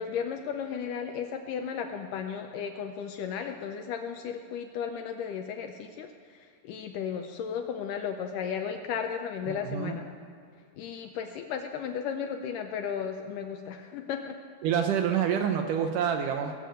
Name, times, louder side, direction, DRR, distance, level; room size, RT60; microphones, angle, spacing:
voice 1, 0.0-6.1 6.6-10.1 10.8-14.4, left 7 dB, 80° left, 5 dB, 2.0 m, -34 dB
voice 2, 9.5-10.0 14.6-16.6, right 8 dB, 75° right, 5 dB, 2.1 m, -27 dB
18.5 x 6.8 x 7.7 m, 2.1 s
omnidirectional pair, 4.3 m